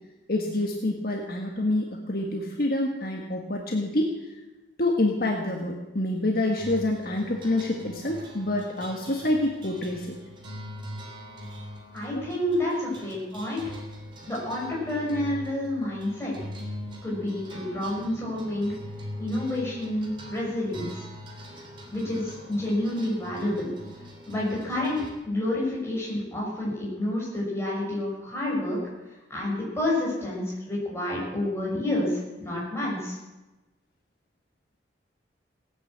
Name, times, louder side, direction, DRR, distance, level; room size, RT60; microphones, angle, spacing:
voice 1, 0.3-4.1 4.8-10.2 12.1-12.6, left 1 dB, 50° left, 1 dB, 1.7 m, -27 dB
sound 1, 6.5-25.1, equal, 25° right, 3.2 m, -42 dB
voice 2, 11.9-13.7 14.3-16.5 17.0-18.8 19.2-21.1 21.9-23.7 24.3-28.8 29.3-33.2, left 1 dB, 15° left, -5 dB, 6.2 m, -29 dB
17.5 x 9.9 x 8.0 m, 1.1 s
head